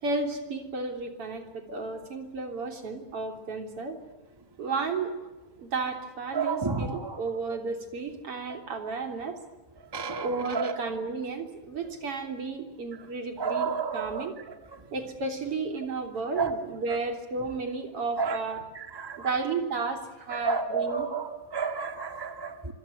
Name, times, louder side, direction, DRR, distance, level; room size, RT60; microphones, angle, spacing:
voice 1, 0.0-4.0 4.6-5.1 5.6-9.4 10.2-14.4 14.9-18.6 19.2-21.1, right 4 dB, 45° right, 5 dB, 4.1 m, -33 dB
voice 2, 6.3-7.2 9.9-10.3 10.5-10.7 13.4-14.3 16.4-16.5 18.2-18.4 19.0-19.2 20.3-22.7, right 5 dB, 15° right, 6 dB, 0.7 m, -30 dB
26.0 x 26.0 x 8.0 m, 1.1 s
omnidirectional pair, 3.8 m